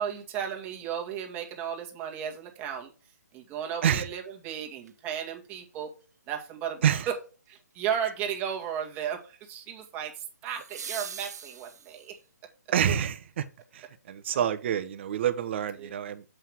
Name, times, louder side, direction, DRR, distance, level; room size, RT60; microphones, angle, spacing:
voice 1, 0.0-2.9 3.3-5.9 6.3-7.2 7.5-12.2 15.8-15.9, right 8 dB, 20° right, 1.9 m, -34 dB
sound 1, 4.8-4.9 10.5-12.3 14.4-14.5, right 7 dB, 65° right, 0.6 m, -41 dB
voice 2, 12.7-13.4 13.7-16.2, right 9 dB, 40° right, 1.1 m, -27 dB
7.9 x 5.7 x 4.8 m
hypercardioid pair, 155°, 9 cm